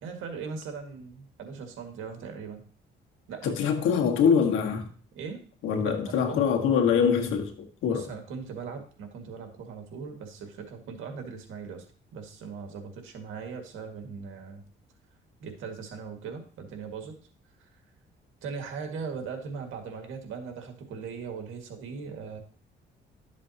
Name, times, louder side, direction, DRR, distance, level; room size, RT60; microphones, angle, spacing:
voice 1, 0.0-2.6 3.3-4.0 5.1-5.4 5.8-6.4 7.9-11.8 12.1-14.6 15.4-17.2 18.4-22.4, right 5 dB, 90° right, 1.9 m, -39 dB
voice 2, 3.4-4.9 5.6-8.1, left 7 dB, 90° left, 1.7 m, -24 dB
12.0 x 7.4 x 2.8 m
cardioid pair, 90°, 20 cm